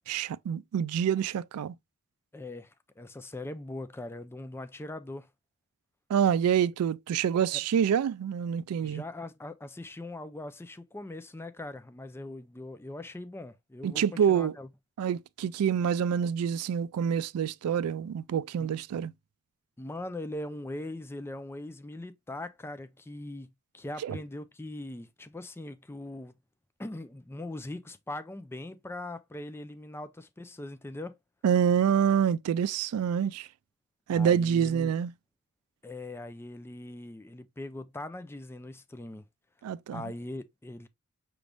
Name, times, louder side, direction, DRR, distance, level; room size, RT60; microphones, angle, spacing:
voice 1, 0.1-1.7 6.1-9.0 13.8-14.6 15.0-19.1 24.0-24.2 31.4-33.5 34.1-35.1 39.6-40.1, right 8 dB, 70° right, 0.3 m, -27 dB
voice 2, 2.3-5.3 7.5-7.6 8.8-14.7 18.6-18.7 19.8-26.4 26.8-31.2 34.1-34.9 35.8-39.2 39.9-40.9, left 1 dB, 10° left, 0.4 m, -41 dB
6.0 x 3.4 x 2.5 m
head